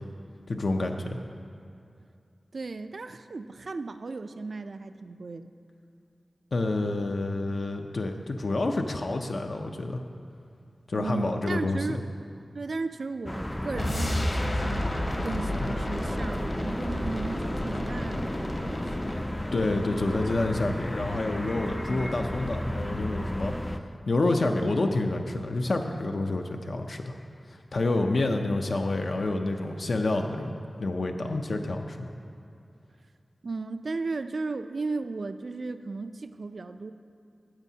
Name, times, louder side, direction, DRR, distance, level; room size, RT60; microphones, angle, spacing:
voice 1, 0.5-1.2 6.5-10.0 10.9-11.9 19.5-23.5 24.1-27.2 27.5-32.1, left 2 dB, 70° left, 3 dB, 0.5 m, -28 dB
voice 2, 2.5-5.5 10.9-12.0 12.5-19.0 33.4-36.9, right 3 dB, 65° right, 10 dB, 0.3 m, -35 dB
sound 1, 13.3-23.8, left 1 dB, 10° left, 0.3 m, -34 dB
sound 2, 13.7-19.3, left 1 dB, 35° left, 0.8 m, -32 dB
14.5 x 8.1 x 2.8 m, 2.5 s
wide cardioid pair, 95°, 0 cm